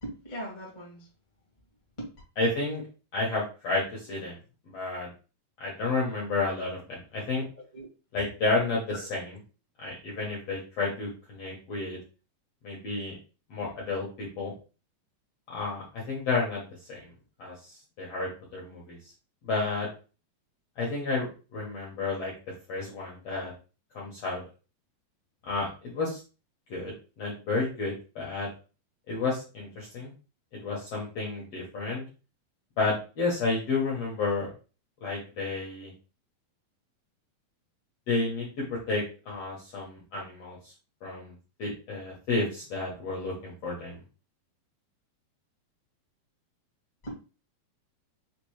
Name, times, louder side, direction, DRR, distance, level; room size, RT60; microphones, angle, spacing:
voice 1, 0.0-1.1 2.0-2.1 7.5-7.9 8.9-9.0 47.0-47.1, right 1 dB, 40° left, -4 dB, 0.6 m, -39 dB
voice 2, 2.4-2.8 3.1-4.4 4.7-5.1 5.6-7.4 8.1-9.4 9.8-12.0 12.6-13.2 13.5-14.5 15.5-17.1 17.4-19.0 19.4-19.9 20.8-22.3 22.7-23.5 23.9-24.4 25.4-26.2 26.7-28.5 29.1-30.1 30.6-32.0 32.8-34.5 35.0-35.9 38.1-40.7 41.0-41.3 41.6-44.0, left 3 dB, 70° left, -4 dB, 1.5 m, -31 dB
5.9 x 2.6 x 3.1 m, 0.34 s
omnidirectional pair, 4.4 m